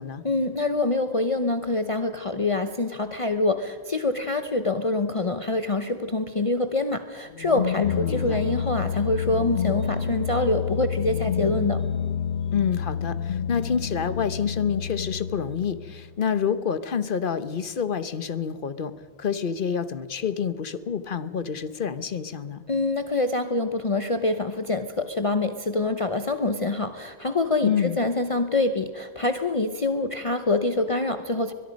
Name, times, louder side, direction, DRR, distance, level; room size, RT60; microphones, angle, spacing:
voice 1, 0.2-11.8 22.7-31.5, left 2 dB, 35° left, 8 dB, 0.9 m, -25 dB
sound 1, 7.3-16.1, left 7 dB, 80° left, 1.1 m, -29 dB
voice 2, 7.8-8.4 12.5-18.9 19.2-22.6 27.6-28.0, left 7 dB, 55° left, 13 dB, 1.1 m, -28 dB
22.5 x 22.0 x 5.3 m, 1.5 s
omnidirectional pair, 1.0 m